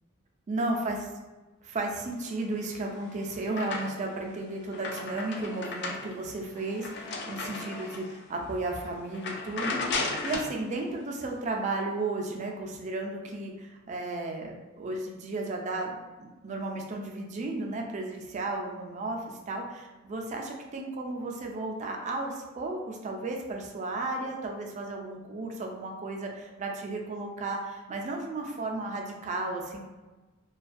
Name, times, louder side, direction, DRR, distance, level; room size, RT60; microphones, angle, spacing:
voice 1, 0.5-1.1 1.6-9.8 10.2-29.8, right 2 dB, 35° right, 1 dB, 0.3 m, -34 dB
sound 1, 2.6-4.2 4.6-8.2 8.6-8.8 9.1-10.6, left 3 dB, 60° left, 0.4 m, -35 dB
2.4 x 2.2 x 2.5 m, 1.2 s
head